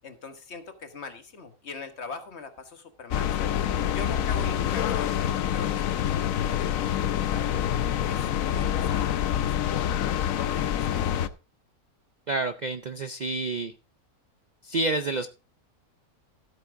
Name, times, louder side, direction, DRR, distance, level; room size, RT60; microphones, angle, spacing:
voice 1, 0.0-3.6 3.9-7.5 8.1-11.1, left 4 dB, 50° left, 8 dB, 1.4 m, -42 dB
sound 1, 3.1-11.3, left 10 dB, 70° left, 1.0 m, -26 dB
voice 2, 12.3-13.7 14.6-15.3, right 2 dB, 80° right, 9 dB, 0.4 m, -28 dB
13.5 x 8.3 x 3.6 m, 0.32 s
omnidirectional pair, 1.6 m